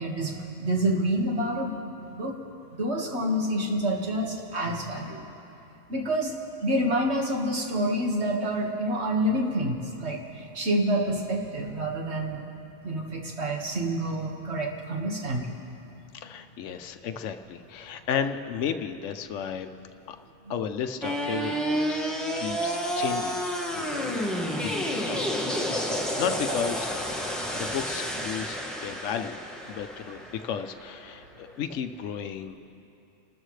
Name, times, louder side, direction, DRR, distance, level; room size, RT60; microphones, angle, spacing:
voice 1, 0.0-1.7 2.0-2.4 2.7-5.4 5.9-6.4 6.6-12.5 12.8-15.5 20.4-20.6, right 1 dB, 65° right, -1 dB, 1.9 m, -28 dB
voice 2, 16.1-19.7 20.1-20.2 20.5-22.0 22.4-23.4 23.7-24.4 24.6-25.8 26.2-26.9 27.5-29.4 29.7-32.6, left 8 dB, 90° left, 7 dB, 1.0 m, -33 dB
sound 1, 21.0-31.1, equal, ahead, 1.6 m, -30 dB
28.5 x 13.0 x 3.2 m, 2.8 s
omnidirectional pair, 1.2 m